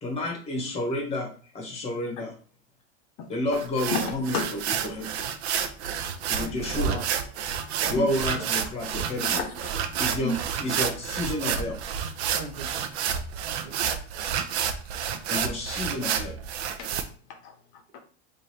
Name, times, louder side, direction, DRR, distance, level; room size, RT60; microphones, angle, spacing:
voice 1, 0.0-2.3 3.3-4.4 4.8-5.2 6.3-7.0 7.9-9.4 10.0-10.3 10.6-11.8 15.3-16.4, left 1 dB, 20° left, 1 dB, 1.0 m, -30 dB
sound 1, 3.5-17.0, right 8 dB, 75° right, 0.6 m, -29 dB
voice 2, 3.9-4.8 5.8-5.9 7.9-8.1 9.2-9.7 10.2-10.4 16.8-16.9 17.4-18.0, left 3 dB, 50° left, 5 dB, 0.7 m, -32 dB
voice 3, 6.3-7.1 7.8-8.5 12.3-13.0 13.4-13.9 17.9-18.0, right 2 dB, 50° right, 3 dB, 0.9 m, -40 dB
3.1 x 2.6 x 4.2 m, 0.41 s
supercardioid pair, 150°, 32 cm